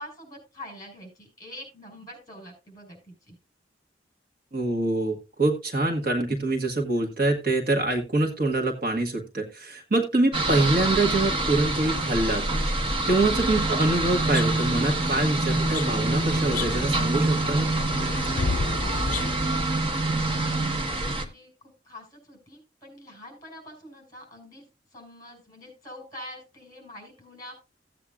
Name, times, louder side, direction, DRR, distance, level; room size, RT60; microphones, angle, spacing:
voice 1, 0.0-3.4 18.0-24.7 24.9-27.5, left 1 dB, 20° left, 2 dB, 5.5 m, -46 dB
voice 2, 4.5-12.4 13.1-17.7, right 2 dB, 50° right, 2 dB, 1.7 m, -25 dB
sound 1, 10.3-21.2, right 2 dB, 30° right, 1.3 m, -26 dB
sound 2, 13.9-19.3, left 4 dB, 45° left, 0.4 m, -34 dB
15.5 x 8.5 x 2.4 m, 0.28 s
head